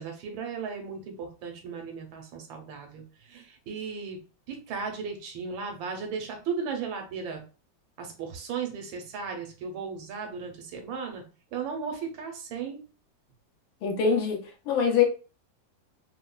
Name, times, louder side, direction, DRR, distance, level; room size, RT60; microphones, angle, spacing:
voice 1, 0.0-3.0 3.3-4.2 4.5-7.4 8.0-11.2 11.5-12.8, right 5 dB, 90° right, 1.5 m, -36 dB
voice 2, 13.8-15.0, left 6 dB, 90° left, 1.6 m, -24 dB
4.0 x 2.1 x 2.2 m
omnidirectional pair, 2.1 m